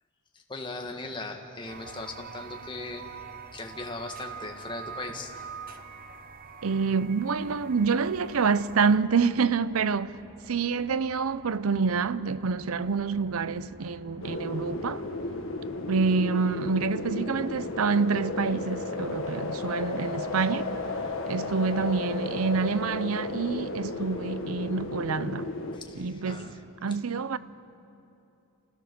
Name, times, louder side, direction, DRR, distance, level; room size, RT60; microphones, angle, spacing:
voice 1, 0.3-3.0 3.5-5.3 25.7-26.6, left 2 dB, 20° left, 1.5 m, -38 dB
sound 1, 1.7-9.0, right 5 dB, 40° right, 0.8 m, -44 dB
voice 2, 6.6-10.2 10.5-15.0 15.9-20.7 21.3-25.5 25.9-26.5 26.8-27.4, right 5 dB, 85° right, 0.6 m, -27 dB
sound 2, 7.2-25.4, equal, 20° right, 5.0 m, -54 dB
sound 3, 14.2-25.8, left 2 dB, 65° left, 1.4 m, -34 dB
28.0 x 16.0 x 6.8 m
head